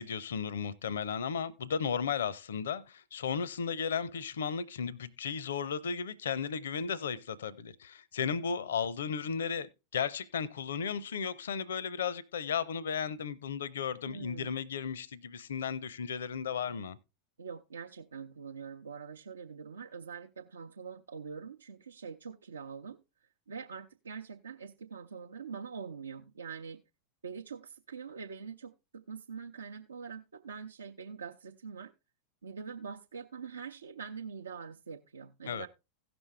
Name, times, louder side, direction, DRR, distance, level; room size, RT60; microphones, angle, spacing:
voice 1, 0.0-17.0 35.4-35.7, left 6 dB, 65° left, 0.6 m, -35 dB
voice 2, 14.1-14.5 17.4-26.8 27.2-31.9 32.4-35.7, right 6 dB, 75° right, 0.6 m, -44 dB
16.5 x 6.1 x 3.3 m
figure-of-eight pair, 85°, 0 cm